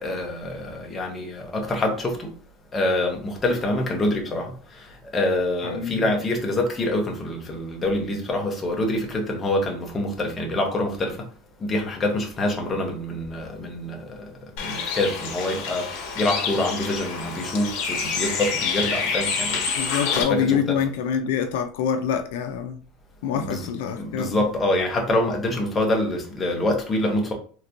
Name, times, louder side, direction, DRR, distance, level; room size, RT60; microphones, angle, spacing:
voice 1, 0.0-2.3 2.7-4.5 5.1-11.2 11.6-14.2 14.6-15.9 16.2-19.6 20.1-20.8 23.3-23.7 24.0-27.3, left 1 dB, 15° left, 0.7 m, -25 dB
voice 2, 5.6-6.1 19.8-22.8 23.2-24.4, left 7 dB, 75° left, 0.4 m, -26 dB
Bird, 14.6-20.2, left 5 dB, 55° left, 1.1 m, -28 dB
3.3 x 2.9 x 2.5 m
supercardioid pair, 160°, 0 cm